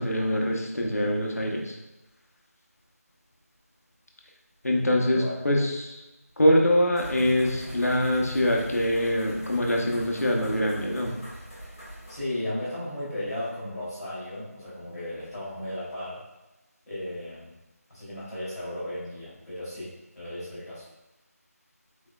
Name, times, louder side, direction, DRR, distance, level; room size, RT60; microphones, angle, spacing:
voice 1, 0.0-1.7 4.6-6.0 6.4-11.1, left 1 dB, 70° left, 0 dB, 0.9 m, -24 dB
voice 2, 4.8-5.4 12.1-16.2 16.8-17.5 17.9-20.9, left 1 dB, 5° left, -21 dB, 0.8 m, -35 dB
sound 1, 6.9-12.2, equal, 20° left, 1.2 m, -42 dB
4.4 x 4.3 x 2.3 m, 1.0 s
figure-of-eight pair, 180°, 9 cm